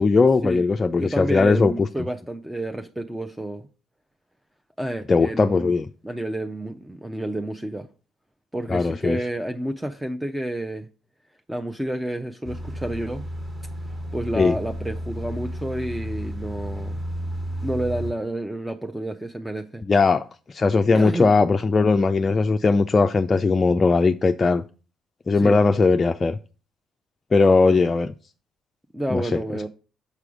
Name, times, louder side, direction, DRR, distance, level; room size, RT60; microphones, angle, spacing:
voice 1, 0.0-1.9 5.1-5.9 8.7-9.2 14.4-14.6 19.9-24.6 25.3-26.4 27.3-28.1 29.1-29.4, left 4 dB, 35° left, 0.4 m, -19 dB
voice 2, 1.0-3.7 4.8-5.8 6.0-7.9 8.5-10.9 11.5-13.3 14.1-17.0 17.6-19.8 20.9-21.3 25.3-25.6 28.9-29.7, right 1 dB, 10° right, 0.6 m, -30 dB
sound 1, 12.4-18.1, equal, 25° right, 1.5 m, -32 dB
6.8 x 4.7 x 5.0 m
hypercardioid pair, 50°, 0 cm